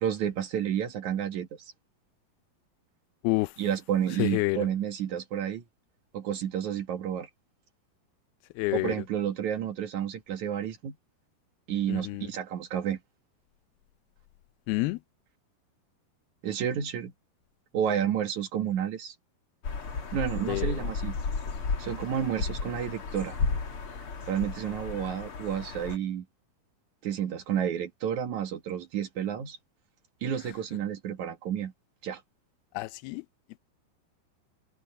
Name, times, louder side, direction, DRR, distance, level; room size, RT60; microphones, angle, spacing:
voice 1, 0.0-1.5 3.6-5.6 6.1-7.3 8.7-11.0 11.7-13.0 16.4-17.1 17.7-19.1 20.1-21.1 21.8-23.3 24.3-26.3 27.0-29.6 30.2-31.7 32.0-32.2, right 9 dB, 60° right, 2.6 m, -30 dB
voice 2, 4.2-4.7 8.6-9.0 11.9-12.3 14.7-15.0 20.5-20.8 32.7-33.3, left 22 dB, 90° left, 2.5 m, -28 dB
sound 1, 19.6-26.0, left 4 dB, 40° left, 2.9 m, -33 dB
omnidirectional pair, 4.3 m